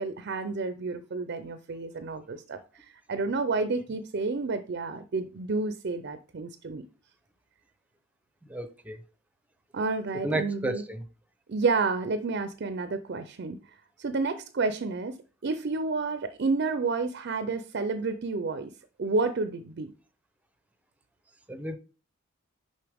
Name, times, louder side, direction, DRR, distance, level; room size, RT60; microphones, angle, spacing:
voice 1, 0.0-6.8 9.7-10.8 11.5-13.6 14.0-18.7 19.0-19.9, right 3 dB, 55° right, 0.5 m, -30 dB
voice 2, 8.5-9.0 10.2-10.8 21.5-21.8, right 1 dB, 5° right, 0.6 m, -31 dB
6.8 x 5.4 x 3.5 m
head